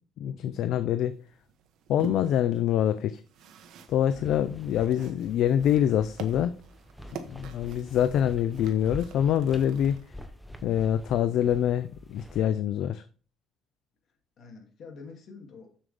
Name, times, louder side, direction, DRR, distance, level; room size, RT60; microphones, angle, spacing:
voice 1, 0.2-1.1 1.9-3.2 3.9-6.5 7.3-10.0 10.6-13.0, left 10 dB, 65° left, 12 dB, 0.5 m, -25 dB
sound 1, 1.0-10.1, right 6 dB, 70° right, 1.1 m, -47 dB
sound 2, 3.9-12.4, equal, ahead, 0.8 m, -46 dB
voice 2, 4.1-4.6 14.4-15.8, left 4 dB, 50° left, 2 dB, 2.3 m, -47 dB
7.3 x 6.8 x 3.4 m, 0.39 s
cardioid pair, 150°, 0 cm